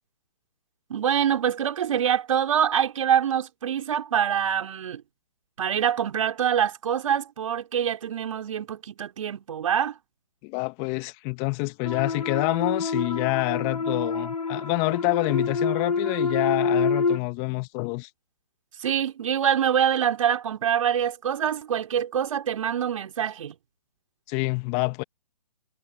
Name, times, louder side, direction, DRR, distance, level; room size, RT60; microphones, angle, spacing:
voice 1, 0.9-5.0 5.6-10.0 18.8-23.5, right 9 dB, 55° right, 4.9 m, -25 dB
voice 2, 10.4-18.1 24.3-25.0, left 31 dB, 25° left, 1.7 m, -27 dB
sound 1, 11.8-17.2, left 4 dB, 85° left, 3.0 m, -27 dB
figure-of-eight pair, 130°, 21 cm